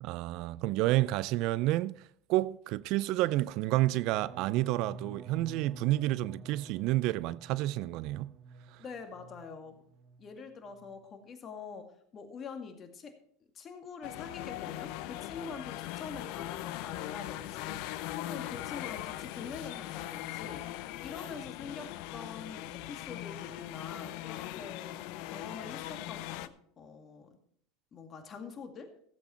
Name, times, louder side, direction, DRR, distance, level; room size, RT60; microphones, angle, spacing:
voice 1, 0.0-2.0 2.3-8.3, right 17 dB, 60° right, 0.4 m, -30 dB
sound 1, 3.7-9.6 9.9-10.4 10.7-11.1, right 3 dB, 45° right, 1.2 m, -49 dB
voice 2, 8.8-9.8 10.2-13.2 13.5-20.8 21.0-27.3 27.9-28.9, left 5 dB, 35° left, 2.1 m, -45 dB
sound 2, 14.0-26.5, left 15 dB, 65° left, 0.6 m, -40 dB
15.0 x 8.1 x 4.4 m
hypercardioid pair, 85°, 0 cm